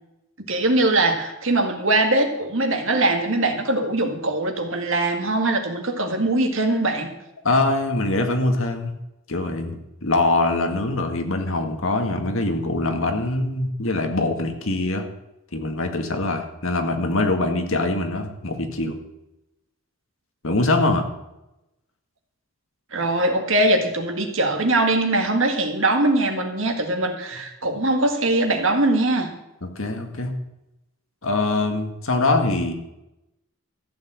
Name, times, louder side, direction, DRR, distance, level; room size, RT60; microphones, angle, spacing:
voice 1, 0.5-7.1 22.9-29.3, right 2 dB, 60° right, 4 dB, 1.9 m, -21 dB
voice 2, 7.4-8.9 9.3-15.0 15.5-19.0 20.4-21.0 29.8-30.3 31.2-32.7, left 2 dB, 65° left, 5 dB, 1.8 m, -23 dB
14.5 x 7.2 x 7.7 m, 0.91 s
head